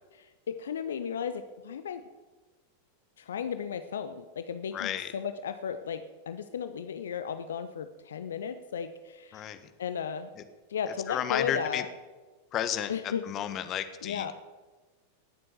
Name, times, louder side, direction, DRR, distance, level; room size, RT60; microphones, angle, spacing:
voice 1, 0.1-2.0 3.2-9.5 9.8-10.3 10.7-11.9 12.9-13.2 14.0-14.3, left 7 dB, 65° left, 10 dB, 0.7 m, -35 dB
voice 2, 4.7-5.1 9.3-9.6 10.4-10.5 11.1-11.8 12.5-14.3, left 10 dB, 30° left, 10 dB, 1.3 m, -32 dB
19.0 x 7.7 x 7.0 m, 1.3 s
figure-of-eight pair, 90°, 0 cm